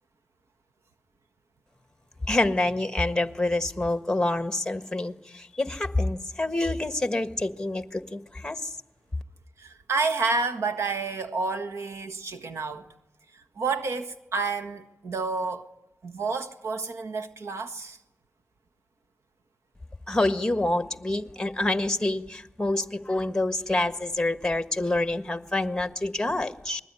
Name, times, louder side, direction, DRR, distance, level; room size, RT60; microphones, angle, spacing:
voice 1, 2.3-8.7 20.1-26.8, left 2 dB, 15° left, 1.5 m, -27 dB
voice 2, 9.6-12.9 13.3-15.7 16.0-18.0, right 4 dB, 85° right, 1.6 m, -30 dB
28.5 x 21.0 x 9.8 m
wide cardioid pair, 75°, 5 cm